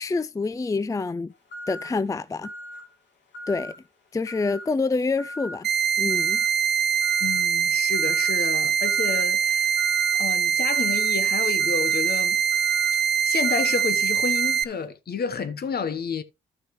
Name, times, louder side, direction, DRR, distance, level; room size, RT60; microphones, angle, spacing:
voice 1, 0.0-1.3 1.7-2.5 3.5-3.7 4.1-5.7 6.0-6.4, left 3 dB, 20° left, 0.4 m, -27 dB
sound 1, 1.5-2.0 2.4-2.9 3.3-3.8 4.3-4.7 5.2-5.6 6.1-6.5 7.0-7.5 7.9-8.4 8.8-9.3 9.8-10.2 10.7-14.8, left 1 dB, 75° left, 2.3 m, -41 dB
sound 2, 5.6-14.6, right 7 dB, 70° right, 0.7 m, -23 dB
voice 2, 7.2-9.9 10.2-12.4 13.2-16.2, left 6 dB, 60° left, 1.1 m, -30 dB
13.0 x 6.1 x 3.1 m
supercardioid pair, 55°, 18 cm